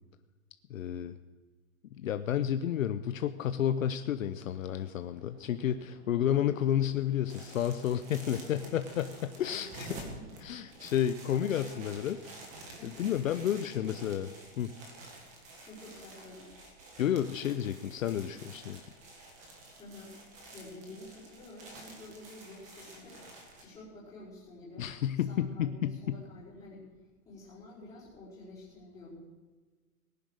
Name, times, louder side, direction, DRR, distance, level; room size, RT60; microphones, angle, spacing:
voice 1, 0.7-1.2 1.9-10.0 10.4-12.2 12.8-14.3 14.6-14.7 17.0-18.8 24.8-26.2, left 10 dB, 60° left, 10 dB, 0.8 m, -31 dB
sound 1, 4.4-11.0, right 1 dB, 60° right, 5.0 m, -59 dB
sound 2, 7.3-23.6, right 2 dB, 15° right, 1.7 m, -50 dB
voice 2, 8.4-8.9 9.4-9.6 10.0-10.3 11.3-12.0 12.7-13.1 13.7-14.0 15.6-16.5 19.8-20.1 20.5-23.2 23.6-24.9 25.3-26.9 27.2-29.2, left 2 dB, 5° left, -10 dB, 4.8 m, -50 dB
19.0 x 10.5 x 6.4 m, 1.3 s
hypercardioid pair, 175°, 44 cm